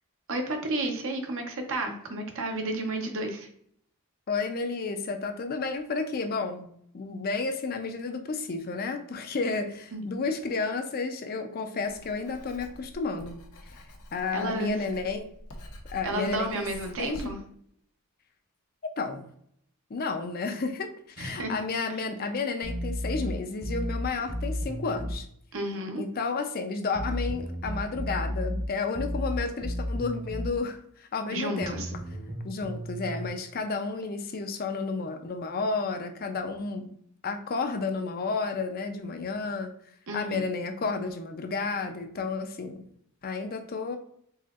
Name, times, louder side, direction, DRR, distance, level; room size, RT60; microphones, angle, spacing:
voice 1, 0.3-3.5 9.9-10.0 14.3-14.7 16.0-17.4 21.2-21.5 21.9-22.0 25.5-26.0 31.3-31.9 40.1-40.4, right 1 dB, 60° right, 4 dB, 0.8 m, -32 dB
voice 2, 4.3-13.8 14.1-15.2 15.9-16.7 17.0-17.3 19.0-19.2 19.9-25.3 26.0-31.8 32.4-36.9 37.2-39.7 40.1-42.9 43.2-44.0, left 4 dB, 40° left, 6 dB, 0.5 m, -31 dB
Writing, 11.8-17.3, left 1 dB, 85° left, 0.8 m, -46 dB
sound 1, 22.6-25.2 26.9-30.6 31.6-33.3, equal, 25° right, 0.8 m, -33 dB
4.2 x 3.7 x 2.4 m, 0.67 s
head